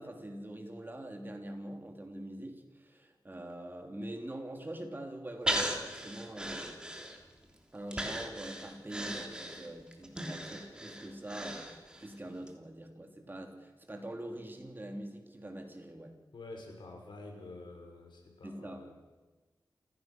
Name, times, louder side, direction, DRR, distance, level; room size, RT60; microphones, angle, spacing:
voice 1, 0.0-6.8 7.7-16.2 18.4-18.9, right 1 dB, 25° right, 3 dB, 3.4 m, -44 dB
Breathing, 5.5-7.4 7.9-12.1 12.5-12.6, right 1 dB, 10° right, 3.3 m, -37 dB
voice 2, 16.3-18.9, left 2 dB, 90° left, 2 dB, 5.7 m, -48 dB
28.5 x 16.0 x 6.2 m, 1.2 s
wide cardioid pair, 95°, 8 cm